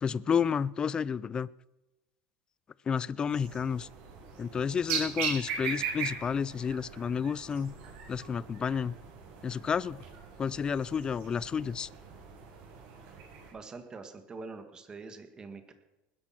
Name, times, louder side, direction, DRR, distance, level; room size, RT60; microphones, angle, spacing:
voice 1, 0.0-1.5 2.9-3.9 4.4-7.7 8.1-8.9 9.4-10.0 10.4-11.9, left 7 dB, 20° left, 21 dB, 0.4 m, -31 dB
sound 1, 3.3-13.5, right 6 dB, 65° right, 7.8 m, -39 dB
voice 2, 13.5-15.7, right 4 dB, 20° right, 7 dB, 1.9 m, -44 dB
20.0 x 11.0 x 6.0 m, 0.99 s
supercardioid pair, 140°, 4 cm